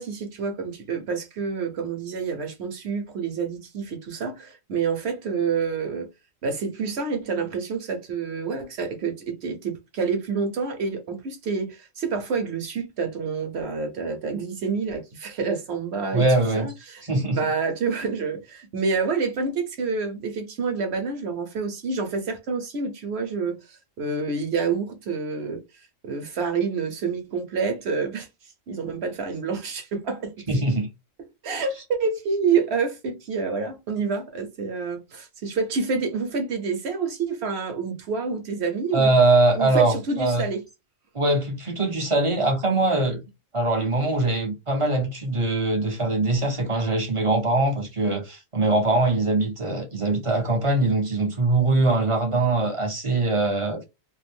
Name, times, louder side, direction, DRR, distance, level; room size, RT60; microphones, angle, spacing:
voice 1, 0.0-6.1 6.4-16.3 16.5-28.3 28.7-30.4 31.4-39.1 39.5-40.6, right 5 dB, 60° right, 1.0 m, -28 dB
voice 2, 16.1-16.7 17.0-17.4 30.5-30.9 38.9-40.4 41.1-43.2 43.5-53.8, right 2 dB, 35° right, 0.6 m, -22 dB
2.6 x 2.5 x 3.4 m
omnidirectional pair, 1.4 m